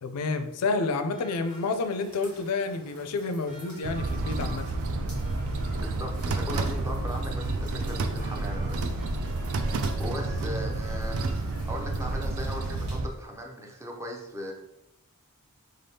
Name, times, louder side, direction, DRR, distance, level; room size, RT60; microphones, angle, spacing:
voice 1, 0.0-4.7, left 3 dB, 80° left, 8 dB, 0.4 m, -29 dB
sound 1, 1.1-2.1 3.5-6.0 7.4-11.8 13.2-13.3, right 2 dB, 40° right, 0.8 m, -51 dB
sound 2, 1.4-13.0, right 1 dB, 80° right, 1.4 m, -52 dB
sound 3, 3.8-13.1, right 2 dB, 65° right, 0.4 m, -30 dB
voice 2, 5.7-9.1 10.0-14.5, equal, 15° right, 1 dB, 0.5 m, -38 dB
3.8 x 3.4 x 2.7 m, 0.91 s
head